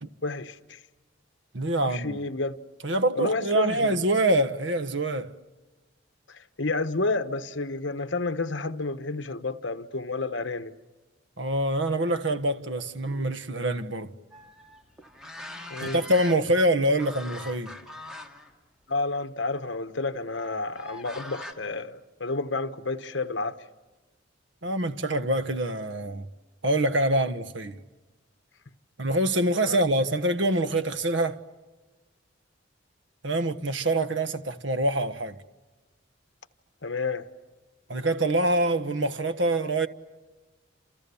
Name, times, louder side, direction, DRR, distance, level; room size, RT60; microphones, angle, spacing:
voice 1, 0.2-0.8 1.8-2.6 3.1-4.0 6.3-10.7 15.7-16.0 18.9-23.6 29.7-29.8 36.8-37.3, left 3 dB, 60° left, 1.3 m, -30 dB
voice 2, 1.5-2.2 2.8-5.3 11.4-14.1 15.8-17.8 24.6-26.3 26.6-27.8 29.0-31.4 33.2-35.4 37.9-39.9, right 1 dB, 65° right, 1.3 m, -25 dB
sound 1, 14.3-16.7 17.0-18.5 18.9-19.1 20.4-21.5, left 1 dB, 5° right, 2.4 m, -42 dB
29.5 x 28.5 x 7.1 m
head